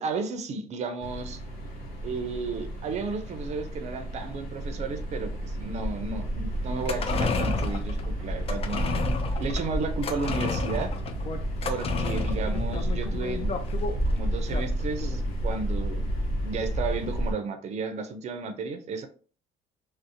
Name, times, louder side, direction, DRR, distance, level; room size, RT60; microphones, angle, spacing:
voice 1, 0.0-1.4 2.0-8.9 9.4-10.9 11.6-13.6 14.1-16.2 16.4-19.1, right 4 dB, 40° right, 7 dB, 0.5 m, -33 dB
sound 1, 1.0-17.3, right 1 dB, 60° left, 1.0 m, -31 dB
sound 2, 6.7-15.3 15.6-15.7, left 3 dB, 35° left, 0.4 m, -31 dB
2.6 x 2.0 x 2.6 m, 0.40 s
cardioid pair, 110°, 17 cm